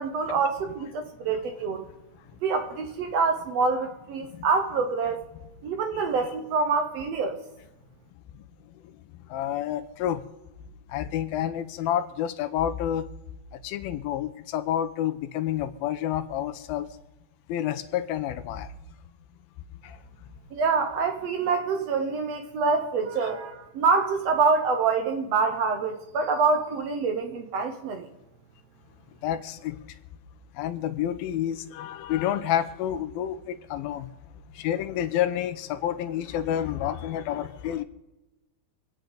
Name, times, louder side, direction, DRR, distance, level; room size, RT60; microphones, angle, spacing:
voice 1, 0.0-1.9 2.4-5.3 5.6-7.4 20.5-28.1, right 4 dB, 70° right, 1.5 m, -26 dB
voice 2, 9.3-10.2 10.9-13.1 13.6-16.9 17.5-18.7 19.8-20.0 29.2-29.8 30.6-34.1 34.6-37.8, left 11 dB, 90° left, 2.6 m, -29 dB
26.0 x 9.2 x 3.9 m
omnidirectional pair, 4.2 m